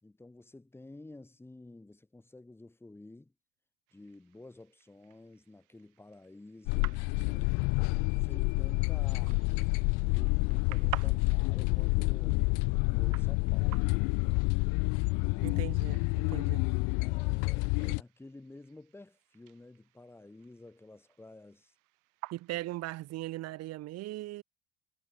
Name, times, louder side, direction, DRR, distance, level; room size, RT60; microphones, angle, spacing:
voice 1, 0.0-3.3 3.9-7.6 8.2-9.4 10.1-12.5 12.9-13.9 15.1-15.6 17.0-21.7, left 2 dB, 5° left, 2.9 m, -51 dB
sound 1, 3.9-23.4, right 22 dB, 65° right, 6.5 m, -51 dB
sound 2, 6.7-18.0, left 33 dB, 65° left, 0.5 m, -28 dB
voice 2, 15.4-16.7 22.3-24.4, right 16 dB, 45° right, 1.2 m, -39 dB
cardioid pair, 140°, 34 cm